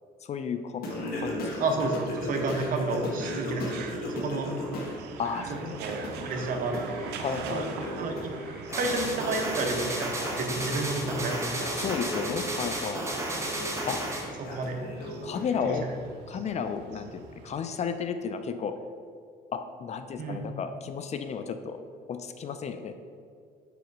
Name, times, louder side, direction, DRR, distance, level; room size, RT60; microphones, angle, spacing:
voice 1, 0.2-0.9 1.2-1.6 5.2-5.8 7.2-7.7 11.8-13.1 13.9-14.0 15.2-15.9 16.3-18.7 19.5-21.8 22.1-23.0, left 6 dB, 40° left, 9 dB, 0.4 m, -33 dB
Singing, 0.8-5.0 5.3-15.7, left 1 dB, 60° left, 1.4 m, -37 dB
sound 1, 0.9-17.6, right 5 dB, 80° right, 0.6 m, -44 dB
voice 2, 1.6-4.5 5.5-7.1 7.5-7.6 8.0-8.3 8.7-11.9 14.4-14.8 15.6-16.0 20.2-20.5, right 2 dB, 55° right, 3 dB, 0.9 m, -31 dB
sound 2, 8.7-14.3, right 2 dB, 15° right, 1.0 m, -33 dB
5.0 x 4.9 x 4.6 m, 2.3 s
cardioid pair, 110°, 17 cm